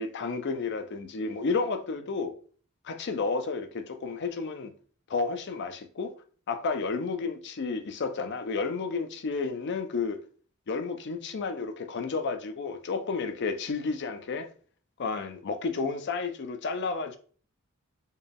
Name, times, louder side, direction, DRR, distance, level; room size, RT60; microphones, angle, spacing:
voice 1, 0.0-2.3 2.8-4.7 5.1-6.1 6.5-10.2 10.7-14.5 15.0-17.2, left 4 dB, 55° left, 0.5 m, -31 dB
4.4 x 2.3 x 3.3 m
head